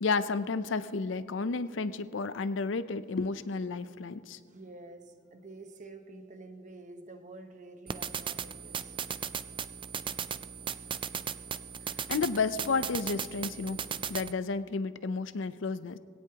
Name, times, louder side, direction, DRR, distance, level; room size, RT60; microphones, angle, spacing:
voice 1, 0.0-4.4 12.1-13.8 14.1-16.0, left 4 dB, 75° left, 0.6 m, -31 dB
voice 2, 4.5-9.0, right 2 dB, 40° right, 1.1 m, -49 dB
sound 1, 7.9-14.3, right 7 dB, 25° right, 0.4 m, -37 dB
22.0 x 17.5 x 2.9 m
head